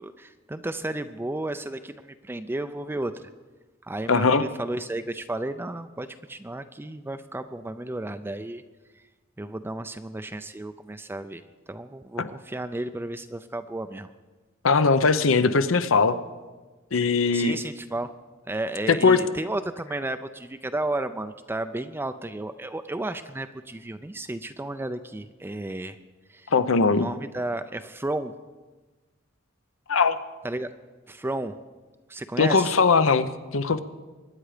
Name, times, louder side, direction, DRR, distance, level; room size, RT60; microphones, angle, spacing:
voice 1, 0.0-3.3 3.8-8.6 9.4-14.1 17.3-18.1 18.5-26.0 26.3-26.5 26.9-28.3 30.4-30.7 31.1-31.6 32.1-32.8, right 2 dB, 10° right, 9 dB, 0.4 m, -33 dB
voice 2, 4.1-4.4 12.2-12.3 14.6-16.2 16.9-17.6 19.0-19.2 26.5-27.1 29.9-30.2 32.4-33.3 33.5-33.8, left 4 dB, 75° left, 12 dB, 0.8 m, -20 dB
23.5 x 10.0 x 5.0 m, 1.3 s
head